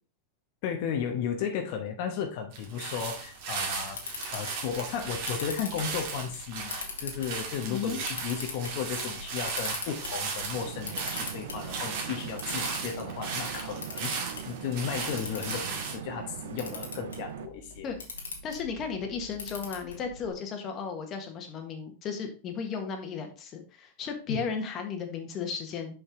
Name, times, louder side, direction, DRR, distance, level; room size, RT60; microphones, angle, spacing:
voice 1, 0.6-4.0 4.3-17.9 24.3-24.5, left 7 dB, 60° left, 1.1 m, -34 dB
sound 1, 2.5-16.0, right 5 dB, 55° right, 2.1 m, -36 dB
Camera, 3.6-20.3, left 4 dB, 90° left, 1.7 m, -43 dB
voice 2, 7.7-8.0 17.8-18.0 18.4-26.0, left 5 dB, 35° left, 1.6 m, -35 dB
sound 2, 10.5-17.5, right 10 dB, 70° right, 0.5 m, -41 dB
5.7 x 5.3 x 3.8 m
hypercardioid pair, 105°, 0 cm